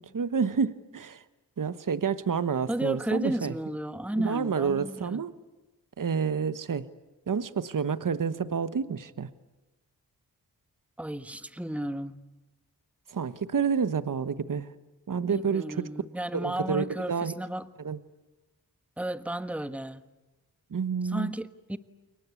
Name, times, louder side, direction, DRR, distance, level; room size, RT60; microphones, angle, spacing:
voice 1, 0.1-1.2 1.6-3.5 4.2-5.3 6.0-6.9 7.3-9.3 13.1-14.7 15.1-15.9 16.3-17.3 17.8-18.0 20.7-21.3, right 6 dB, 55° right, 13 dB, 1.2 m, -29 dB
voice 2, 2.7-5.3 11.0-12.2 15.3-17.7 19.0-20.0 21.0-21.8, right 1 dB, 5° right, 11 dB, 1.4 m, -33 dB
29.5 x 23.0 x 8.4 m, 1.1 s
cardioid pair, 55°, 39 cm